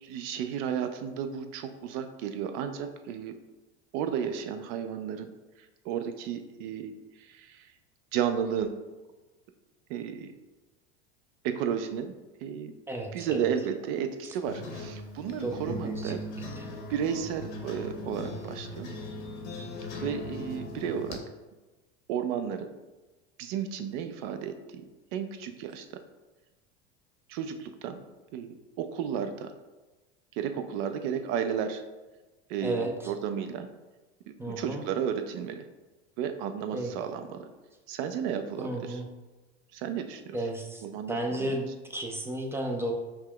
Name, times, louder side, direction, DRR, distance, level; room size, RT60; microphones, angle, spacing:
voice 1, 0.0-3.3 3.9-5.3 5.8-6.9 7.2-7.7 8.1-8.7 9.9-10.3 11.4-12.1 12.4-12.7 13.1-16.2 16.9-18.9 20.0-21.2 22.1-22.7 23.4-24.5 25.1-25.9 27.3-28.0 28.3-29.5 30.3-31.8 32.5-33.7 34.3-35.6 36.2-37.5 37.9-39.0 39.7-40.4 40.8-41.6, right 8 dB, 55° right, 8 dB, 0.5 m, -33 dB
voice 2, 12.9-13.4 15.4-16.1 16.6-16.7 32.6-33.1 34.4-34.8 36.7-36.9 38.6-39.1 40.3-40.8 41.1-42.9, right 1 dB, 5° right, 2 dB, 0.4 m, -33 dB
sound 1, 14.5-21.2, left 1 dB, 80° left, 0.8 m, -39 dB
5.6 x 2.2 x 2.3 m, 1.1 s
hypercardioid pair, 85°, 35 cm